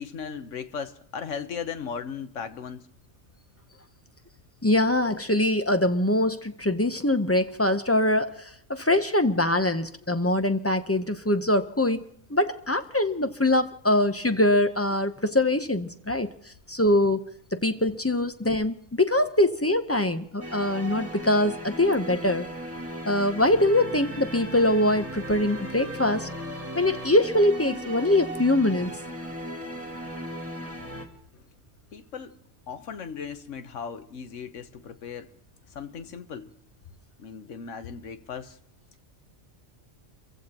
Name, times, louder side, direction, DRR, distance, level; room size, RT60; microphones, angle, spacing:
voice 1, 0.0-2.9 30.7-30.9 31.3-31.4 31.9-32.4 32.7-35.3 35.7-36.5 37.2-38.6, left 6 dB, 75° left, 1.3 m, -37 dB
voice 2, 4.6-16.3 16.7-17.2 17.5-22.5 23.1-26.3 26.7-28.9, left 1 dB, 15° left, 0.5 m, -23 dB
sound 1, 20.4-31.0, right 1 dB, 10° right, 1.8 m, -37 dB
30.0 x 15.5 x 2.9 m
omnidirectional pair, 1.3 m